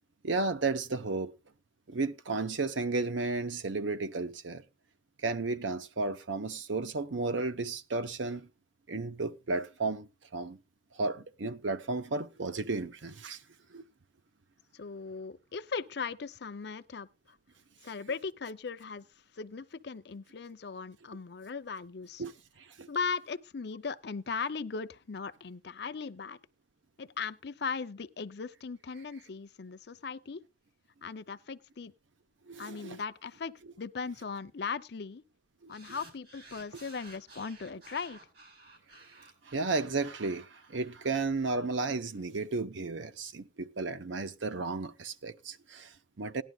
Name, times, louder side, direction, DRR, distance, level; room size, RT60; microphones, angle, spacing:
voice 1, 0.2-1.3 1.9-4.6 5.2-8.5 8.9-10.6 10.9-13.4 13.7-13.8 22.2-22.3 22.6-22.9 32.5-33.0 35.6-35.7 39.5-46.4, right 3 dB, 80° right, 0.8 m, -33 dB
voice 2, 14.7-17.1 17.8-19.1 19.3-22.2 22.9-26.4 27.0-30.5 31.0-31.9 32.6-35.2 35.7-38.2, left 5 dB, 60° left, 0.6 m, -38 dB
sound 1, 35.7-42.2, right 2 dB, 55° right, 4.6 m, -55 dB
17.5 x 11.0 x 2.3 m
head